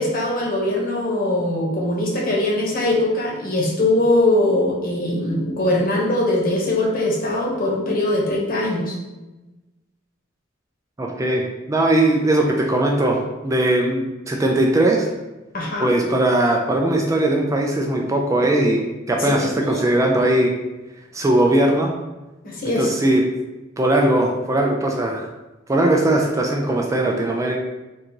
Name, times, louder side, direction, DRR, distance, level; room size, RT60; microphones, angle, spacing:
voice 1, 0.0-9.0 15.5-15.9 19.2-19.8 22.4-22.9, left 1 dB, 45° left, -3 dB, 1.1 m, -21 dB
voice 2, 11.0-11.4 11.7-15.1 15.8-18.8 19.1-20.5 21.1-21.9 22.8-23.2 23.8-25.3 25.7-27.5, right 1 dB, 15° right, 0 dB, 0.3 m, -19 dB
3.7 x 2.6 x 4.4 m, 1.1 s
head